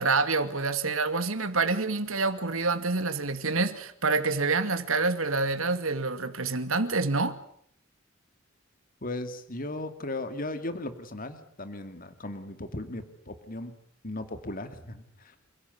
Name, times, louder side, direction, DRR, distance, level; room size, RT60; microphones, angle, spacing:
voice 1, 0.0-7.4, right 3 dB, 85° right, 2.4 m, -27 dB
voice 2, 9.0-13.7 14.0-15.3, left 2 dB, 45° left, 2.3 m, -37 dB
27.5 x 16.5 x 9.6 m
head